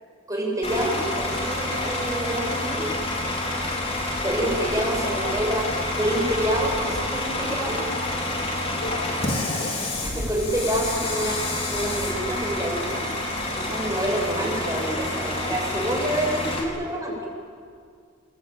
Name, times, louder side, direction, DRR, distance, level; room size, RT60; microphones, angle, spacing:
voice 1, 0.3-2.9 4.2-5.7 6.0-7.9 10.0-13.1 13.5-17.3, right 1 dB, 15° right, -1 dB, 7.1 m, -27 dB
Bus / Idling, 0.6-16.6, left 1 dB, 30° left, 4.6 m, -28 dB
voice 2, 5.0-5.3 8.7-9.8 10.9-11.3, left 3 dB, 55° left, 2 dB, 2.7 m, -36 dB
29.5 x 22.0 x 9.1 m, 2.2 s
head